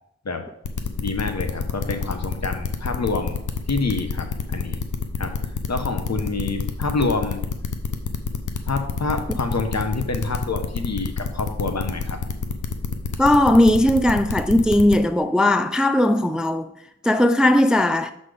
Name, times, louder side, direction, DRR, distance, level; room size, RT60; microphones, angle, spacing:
sound 1, 0.6-14.9, left 5 dB, 90° left, 0.7 m, -27 dB
voice 1, 1.0-3.4 3.7-4.8 5.2-7.4 8.7-12.2, left 3 dB, 60° left, 1.0 m, -27 dB
voice 2, 13.2-16.7 17.0-18.1, left 1 dB, 5° right, 0.3 m, -18 dB
6.4 x 4.2 x 4.9 m
wide cardioid pair, 45°, 30 cm